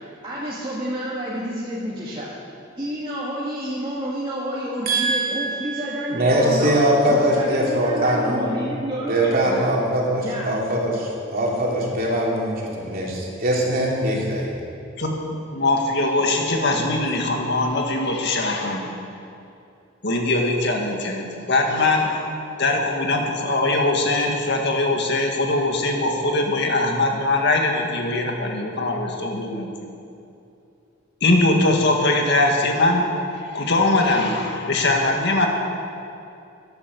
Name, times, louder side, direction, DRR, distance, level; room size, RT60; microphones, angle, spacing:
voice 1, 0.2-2.3 2.8-9.8 10.2-10.5, equal, 25° right, -8 dB, 2.1 m, -29 dB
voice 2, 4.9-8.5 9.1-12.5 12.8-14.5, right 1 dB, 50° right, -3 dB, 3.2 m, -22 dB
voice 3, 15.0-18.9 20.0-22.3 22.6-30.0 31.2-33.0 33.5-35.5, left 2 dB, 60° left, 1 dB, 2.1 m, -21 dB
14.0 x 11.5 x 7.0 m, 2.6 s
head